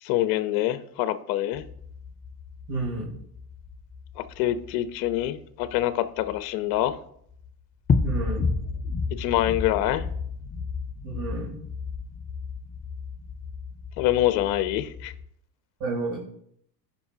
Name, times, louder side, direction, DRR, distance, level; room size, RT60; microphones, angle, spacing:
voice 1, 0.0-1.6 4.2-7.0 9.2-10.0 14.0-15.1, left 13 dB, 50° left, 12 dB, 0.8 m, -25 dB
Wire-tapping, 1.5-7.0 7.3-7.5 7.9-15.3, left 4 dB, 20° left, 0.6 m, -32 dB
voice 2, 2.7-3.1 8.0-8.4 11.0-11.5 15.8-16.2, right 3 dB, 55° right, -5 dB, 3.9 m, -30 dB
15.5 x 5.5 x 2.8 m, 0.69 s
hypercardioid pair, 95°, 49 cm